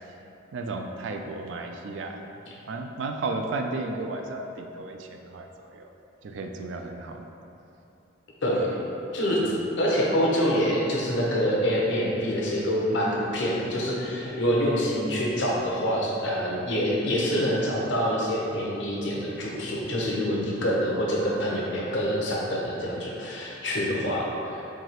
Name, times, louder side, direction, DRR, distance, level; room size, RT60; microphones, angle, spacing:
voice 1, 0.5-2.2 2.7-5.9 6.2-7.3 9.4-9.5 14.3-14.4, right 3 dB, 70° right, 4 dB, 0.3 m, -34 dB
voice 2, 8.4-8.8 9.1-24.5, equal, 65° left, -4 dB, 0.7 m, -26 dB
4.7 x 2.7 x 2.9 m, 2.8 s
head